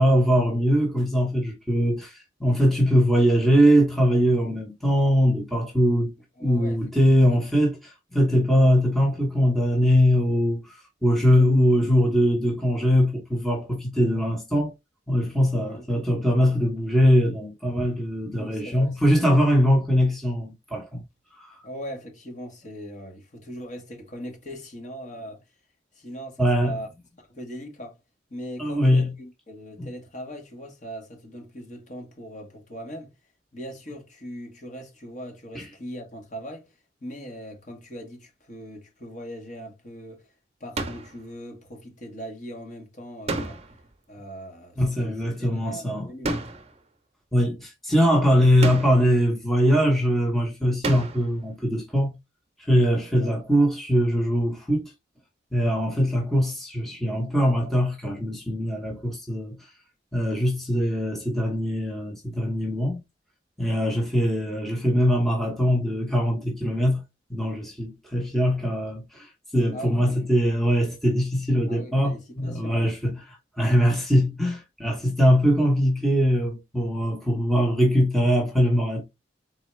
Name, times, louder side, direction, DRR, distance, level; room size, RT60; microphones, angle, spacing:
voice 1, 0.0-6.1 6.4-14.7 15.1-21.0 21.4-21.6 26.4-26.7 28.6-29.1 29.8-29.9 35.5-35.6 44.8-46.1 47.3-52.1 52.7-54.9 55.5-59.6 60.1-63.0 63.6-67.0 67.3-73.1 73.6-79.0, equal, ahead, 1.0 m, -22 dB
voice 2, 6.4-7.3 15.6-15.9 18.4-19.2 21.6-25.4 25.9-26.9 27.2-28.0 28.3-33.1 33.5-36.7 37.0-40.3 40.6-43.6 44.1-46.5 53.1-53.4 69.7-70.3 71.7-72.9, equal, 40° left, 1.5 m, -40 dB
sound 1, 40.8-41.2 43.3-43.9 46.2-46.8 48.6-49.2 50.8-51.4, right 2 dB, 35° right, 0.8 m, -31 dB
4.1 x 3.6 x 3.1 m
head